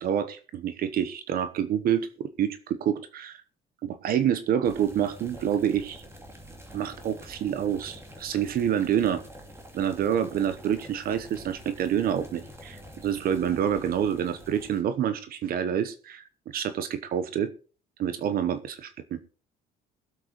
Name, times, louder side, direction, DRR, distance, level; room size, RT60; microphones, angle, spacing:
voice 1, 0.0-3.4 3.8-6.0 6.7-9.2 9.7-16.3 16.5-17.5 18.0-19.2, right 9 dB, 60° right, 12 dB, 1.0 m, -27 dB
sound 1, 4.6-14.8, equal, 15° right, 2.6 m, -47 dB
22.0 x 7.7 x 3.0 m, 0.37 s
cardioid pair, 110°, 17 cm